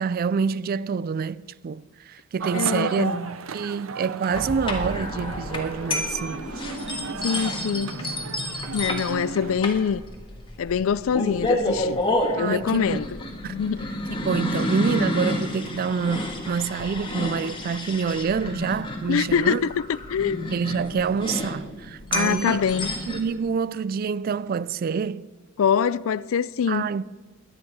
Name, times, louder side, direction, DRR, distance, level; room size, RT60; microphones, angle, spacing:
voice 1, 0.0-6.5 12.4-13.0 13.4-13.6 14.2-19.6 20.5-22.6 23.1-25.3 26.7-27.0, right 6 dB, 45° right, 0.3 m, -27 dB
sound 1, 2.4-9.6, right 5 dB, 80° right, 0.7 m, -35 dB
voice 2, 2.5-3.2 7.2-7.9 8.7-10.0 10.6-12.0 12.3-13.2 13.5-13.9 19.1-20.5 22.1-22.9 25.6-26.9, left 7 dB, 80° left, 0.4 m, -24 dB
sound 2, 4.3-23.2, left 1 dB, 25° left, 1.7 m, -30 dB
21.0 x 9.9 x 4.8 m
head